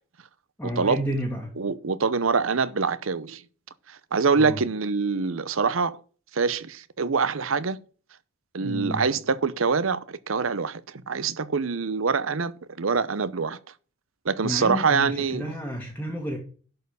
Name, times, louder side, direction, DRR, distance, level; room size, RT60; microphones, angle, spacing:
voice 1, 0.6-1.5 4.3-4.6 8.6-9.1 14.4-16.4, equal, 10° left, 1.6 m, -31 dB
voice 2, 1.6-3.4 3.9-6.0 6.3-7.8 8.5-13.6 14.2-15.4, right 5 dB, 80° right, 0.8 m, -25 dB
11.5 x 4.6 x 6.8 m
head